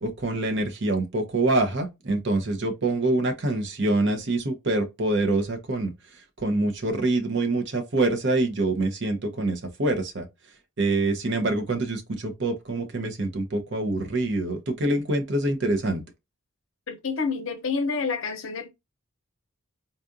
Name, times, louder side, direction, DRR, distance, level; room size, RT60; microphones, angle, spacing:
voice 1, 0.0-5.9 6.4-10.3 10.8-16.0, right 2 dB, 55° right, 0.8 m, -25 dB
voice 2, 16.9-18.7, left 4 dB, 65° left, 0.7 m, -28 dB
4.1 x 2.4 x 2.6 m
head